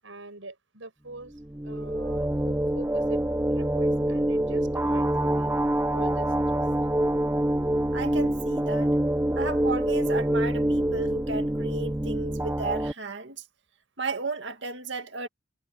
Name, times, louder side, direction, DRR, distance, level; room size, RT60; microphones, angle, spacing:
voice 1, 0.0-3.2 3.5-5.5 5.9-6.7, right 2 dB, 85° right, 7.8 m, -44 dB
sound 1, 1.3-12.9, right 1 dB, 10° right, 0.6 m, -26 dB
voice 2, 7.9-9.0 9.4-13.4 14.0-15.3, right 3 dB, 70° right, 2.1 m, -34 dB
head